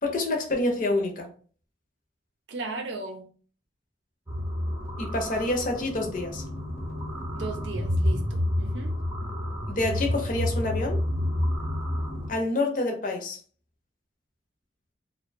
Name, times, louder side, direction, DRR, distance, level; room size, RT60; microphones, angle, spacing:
voice 1, 0.0-1.3 5.0-6.4 9.7-11.0 12.3-13.4, left 2 dB, 45° left, 0.6 m, -27 dB
voice 2, 2.5-3.2 7.3-9.0, right 3 dB, 85° right, 0.5 m, -36 dB
sound 1, 4.3-12.3, left 1 dB, 15° right, 0.6 m, -29 dB
2.5 x 2.2 x 2.5 m
head